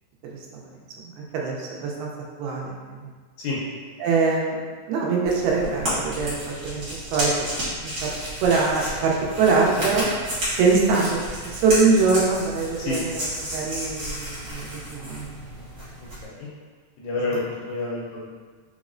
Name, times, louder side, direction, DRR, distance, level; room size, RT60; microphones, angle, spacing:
voice 1, 1.0-2.1 2.4-3.1 4.0-4.6 4.9-7.3 7.8-8.1 8.4-10.1 10.6-13.3 13.5-15.4, right 4 dB, 85° right, -2 dB, 2.5 m, -23 dB
sound 1, 5.2-16.2, equal, 60° right, 1.1 m, -31 dB
voice 2, 17.0-17.4 17.7-18.3, left 3 dB, 80° left, -6 dB, 2.1 m, -29 dB
5.9 x 2.0 x 2.5 m, 1.5 s
omnidirectional pair, 4.3 m